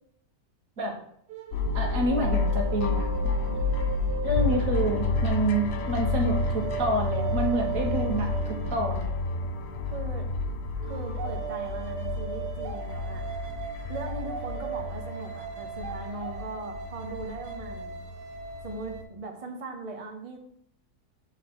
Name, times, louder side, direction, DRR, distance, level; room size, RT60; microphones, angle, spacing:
sound 1, 1.3-9.7 10.8-19.0, right 8 dB, 80° right, 1.4 m, -38 dB
sound 2, 1.5-19.0, left 3 dB, 65° left, 0.6 m, -30 dB
voice 1, 1.7-3.1 4.2-9.1, right 1 dB, 55° right, 0 dB, 1.7 m, -28 dB
voice 2, 3.4-3.7 9.9-10.3 10.8-13.3 13.9-18.0 18.6-20.4, right 3 dB, 35° right, 3 dB, 0.5 m, -39 dB
7.1 x 4.1 x 4.3 m, 0.71 s
omnidirectional pair, 1.7 m